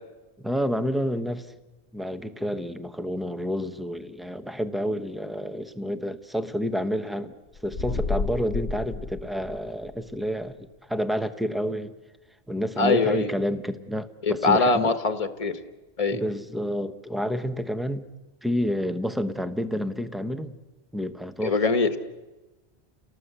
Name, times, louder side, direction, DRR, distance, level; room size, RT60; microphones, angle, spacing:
voice 1, 0.4-1.5 1.9-7.3 7.6-11.9 12.5-14.9 16.1-18.1 18.4-20.6 20.9-21.6, equal, ahead, 10 dB, 1.0 m, -29 dB
sound 1, 7.5-10.0, left 4 dB, 75° left, 1.3 m, -31 dB
voice 2, 12.8-13.3 14.2-15.5 16.0-16.2 21.4-22.0, left 3 dB, 30° left, 10 dB, 1.4 m, -22 dB
30.0 x 18.5 x 8.2 m, 1.1 s
omnidirectional pair, 1.1 m